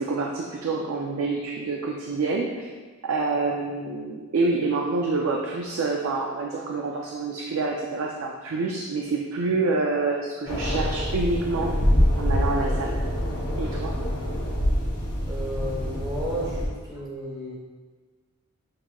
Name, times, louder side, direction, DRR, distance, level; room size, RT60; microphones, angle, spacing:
voice 1, 0.0-2.7 3.0-11.7 12.2-12.9 13.6-13.9, right 3 dB, 65° right, 0 dB, 0.4 m, -27 dB
sound 1, 10.5-16.7, equal, 75° left, 1.2 m, -25 dB
voice 2, 15.3-17.5, equal, 20° right, -4 dB, 0.9 m, -33 dB
6.3 x 2.9 x 2.3 m, 1.4 s
head